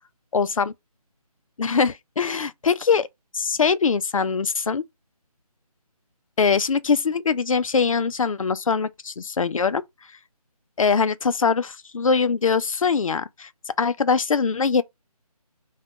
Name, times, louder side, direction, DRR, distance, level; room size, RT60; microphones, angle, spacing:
voice 1, 0.3-0.7 1.6-3.1 3.3-4.8 6.4-9.8 10.8-13.5 13.8-14.8, left 5 dB, 60° left, 0.4 m, -22 dB
2.4 x 2.2 x 3.5 m
figure-of-eight pair, 175°, 20 cm